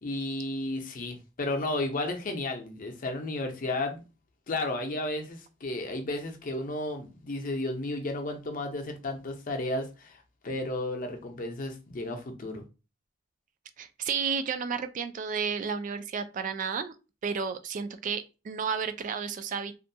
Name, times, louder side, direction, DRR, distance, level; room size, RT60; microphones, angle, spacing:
voice 1, 0.0-4.0 4.5-12.6, left 2 dB, 45° left, 0.6 m, -33 dB
voice 2, 13.8-16.9 17.2-19.8, right 6 dB, 45° right, 0.3 m, -32 dB
2.4 x 2.2 x 2.6 m
head